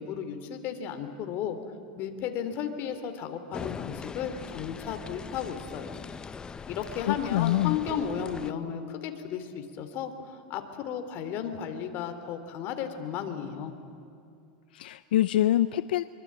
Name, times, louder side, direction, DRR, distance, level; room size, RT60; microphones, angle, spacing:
voice 1, 0.0-1.6 2.0-5.9 6.7-13.7, left 8 dB, 45° left, 7 dB, 2.8 m, -34 dB
sound 1, 3.5-8.5, left 5 dB, 15° left, 0.7 m, -41 dB
voice 2, 7.1-7.8 14.7-16.0, left 14 dB, 85° left, 14 dB, 0.6 m, -25 dB
sound 2, 7.9-9.8, right 6 dB, 50° right, 3.7 m, -47 dB
24.0 x 24.0 x 8.6 m, 2.5 s
supercardioid pair, 135°, 5 cm